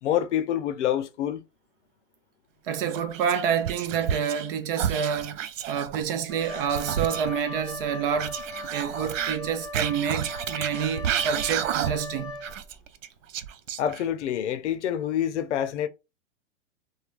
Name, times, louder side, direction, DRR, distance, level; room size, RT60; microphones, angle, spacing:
voice 1, 0.0-1.4 13.8-15.9, left 10 dB, 65° left, 0.6 m, -27 dB
voice 2, 2.6-5.4 5.7-8.4 8.7-12.4, right 7 dB, 45° right, 0.6 m, -28 dB
Whispering, 2.9-4.5 4.7-7.4 8.2-12.1 12.4-14.2, right 9 dB, 90° right, 0.5 m, -31 dB
Wind instrument woodwind instrument, 6.3-12.8, left 1 dB, ahead, 0.8 m, -39 dB
3.1 x 2.2 x 2.4 m
hypercardioid pair, 135°, 38 cm